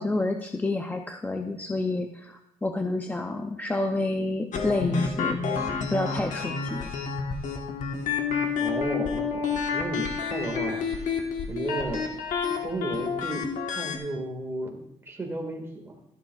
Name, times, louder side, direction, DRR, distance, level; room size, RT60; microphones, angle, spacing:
voice 1, 0.0-5.4 5.9-6.9, left 2 dB, 15° left, 5 dB, 0.6 m, -29 dB
sound 1, 4.5-14.0, left 5 dB, 75° left, 1.3 m, -29 dB
voice 2, 8.6-10.8 11.5-12.1 12.6-16.0, right 2 dB, 20° right, 2 dB, 1.9 m, -33 dB
13.0 x 11.5 x 2.4 m, 0.79 s
cardioid pair, 135°, 13 cm